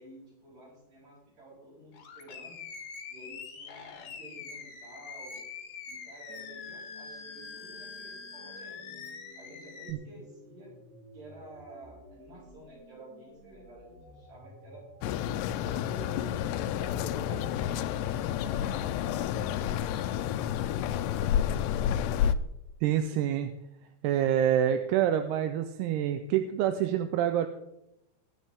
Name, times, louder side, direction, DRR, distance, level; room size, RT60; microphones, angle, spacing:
voice 1, 0.0-2.6 3.1-5.4 5.9-9.1 9.3-10.7 11.1-14.9 15.3-21.4, right 1 dB, 50° right, -5 dB, 8.3 m, -51 dB
Animal, 1.9-9.9, left 5 dB, 55° left, 2.0 m, -44 dB
sound 1, 6.3-21.3, equal, 20° right, 4.0 m, -54 dB
sound 2, 15.0-22.4, left 10 dB, 90° left, 2.8 m, -30 dB
voice 2, 22.8-23.5 24.0-27.5, right 10 dB, 80° right, 8 dB, 2.7 m, -27 dB
22.5 x 9.6 x 3.6 m, 0.84 s
omnidirectional pair, 4.8 m